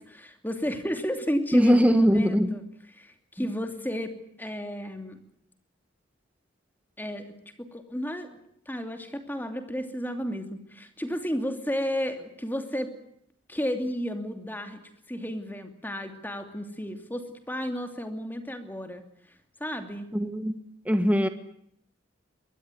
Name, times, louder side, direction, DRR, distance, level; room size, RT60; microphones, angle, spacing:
voice 1, 0.0-2.6 2.9-4.1 4.4-5.2 7.0-7.3 7.6-8.3 8.7-12.9 13.5-14.8 15.1-19.0 19.6-20.1, equal, 10° left, 6 dB, 2.8 m, -32 dB
voice 2, 1.5-2.5 20.1-20.5 20.9-21.3, equal, 5° right, 9 dB, 1.3 m, -21 dB
23.5 x 20.0 x 9.2 m, 0.72 s
head